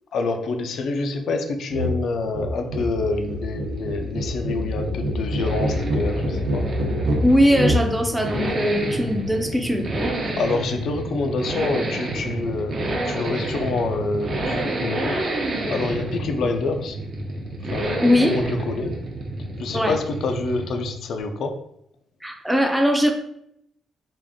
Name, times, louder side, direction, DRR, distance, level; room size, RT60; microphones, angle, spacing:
voice 1, 0.1-6.7 10.4-15.2 15.7-17.0 17.7-18.9 19.6-21.6, left 3 dB, 60° left, 5 dB, 0.5 m, -27 dB
sound 1, 1.7-2.0 2.2-7.9, equal, 80° right, 0.8 m, -25 dB
Accelerating revving vroom, 2.8-20.9 21.2-21.3, right 1 dB, 40° right, 0.7 m, -29 dB
voice 2, 7.2-10.1 18.0-18.3 19.7-20.0 22.2-23.1, equal, 5° right, 3 dB, 0.4 m, -20 dB
3.7 x 2.5 x 3.6 m, 0.74 s
cardioid pair, 145°, 0 cm